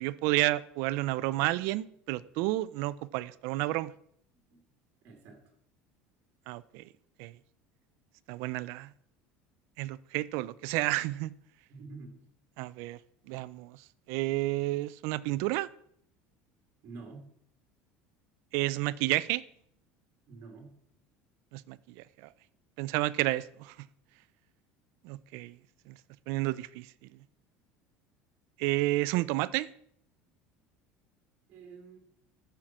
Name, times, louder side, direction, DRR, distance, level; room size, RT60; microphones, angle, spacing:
voice 1, 0.0-3.9 6.5-6.8 7.2-7.3 8.3-8.9 9.8-11.3 12.6-13.0 13.3-13.8 14.1-15.7 18.5-19.4 21.5-21.8 22.8-23.7 25.0-25.5 26.3-26.9 28.6-29.7, right 18 dB, 65° right, 18 dB, 0.5 m, -30 dB
voice 2, 5.0-5.4 11.7-12.2 16.8-17.3 20.3-20.7 31.5-32.0, right 4 dB, 45° right, 3 dB, 2.9 m, -47 dB
14.0 x 5.8 x 6.1 m, 0.69 s
cardioid pair, 155°, 5 cm